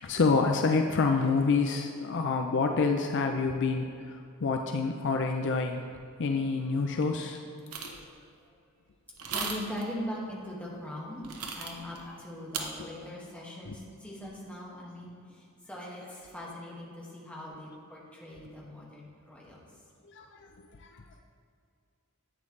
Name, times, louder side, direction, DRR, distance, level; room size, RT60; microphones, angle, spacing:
voice 1, 0.0-5.8 6.2-7.4 7.8-8.0 12.8-12.9 13.7-13.8 20.1-21.2, left 4 dB, 55° left, 4 dB, 0.5 m, -28 dB
voice 2, 6.6-7.0 7.9-8.6 9.3-19.7, left 1 dB, 5° left, -5 dB, 1.9 m, -41 dB
sound 1, 7.7-8.0 9.2-9.8 11.2-12.0 12.5-12.6, right 5 dB, 90° right, 1.0 m, -35 dB
11.0 x 8.6 x 3.3 m, 2.4 s
head